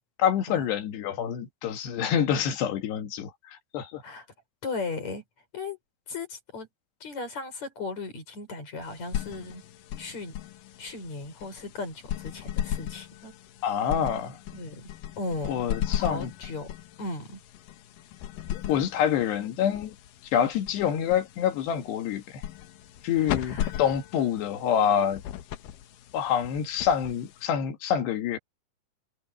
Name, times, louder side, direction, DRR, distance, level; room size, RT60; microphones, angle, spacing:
voice 1, 0.2-4.0 13.6-14.4 15.5-16.3 18.5-19.9 20.3-22.4 23.0-25.2 26.1-28.4, left 9 dB, 85° left, 4.1 m, -27 dB
voice 2, 4.6-5.2 5.5-5.8 6.1-6.7 7.0-9.6 10.0-10.3 10.8-13.3 14.5-14.9 15.2-15.6 15.9-16.7 17.0-17.4 23.2-23.7, left 3 dB, 45° left, 6.2 m, -36 dB
sound 1, 8.8-27.7, left 11 dB, 70° left, 2.3 m, -37 dB
omnidirectional pair, 4.7 m